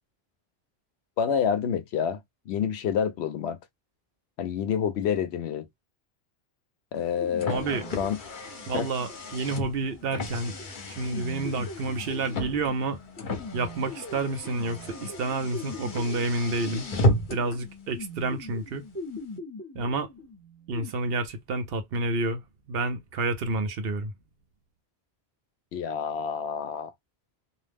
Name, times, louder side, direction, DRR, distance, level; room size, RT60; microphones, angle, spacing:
voice 1, 1.2-2.2 2.5-3.6 4.4-5.7 6.9-7.6 8.0-8.2 8.7-8.9 25.7-26.9, left 7 dB, 80° left, 0.8 m, -28 dB
Car, 6.9-17.6, left 1 dB, 50° left, 0.9 m, -33 dB
sound 1, 7.2-20.9, left 2 dB, 15° left, 0.6 m, -42 dB
voice 2, 7.5-7.9 8.7-10.6 10.8-13.0 13.5-16.9 17.3-18.8 19.7-20.1 20.7-22.4 22.7-24.1, right 3 dB, 65° right, 0.8 m, -29 dB
2.6 x 2.0 x 3.4 m
omnidirectional pair, 1.1 m